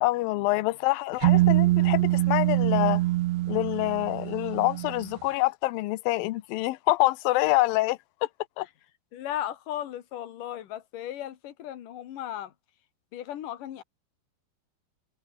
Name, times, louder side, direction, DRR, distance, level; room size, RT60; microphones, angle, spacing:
voice 1, 0.0-3.0 3.5-8.0 8.6-8.7, left 19 dB, 85° left, 2.0 m, -26 dB
sound 1, 1.2-5.1, right 18 dB, 80° right, 3.0 m, -24 dB
voice 2, 9.1-12.5 13.1-13.8, left 11 dB, 55° left, 2.8 m, -36 dB
omnidirectional pair, 5.2 m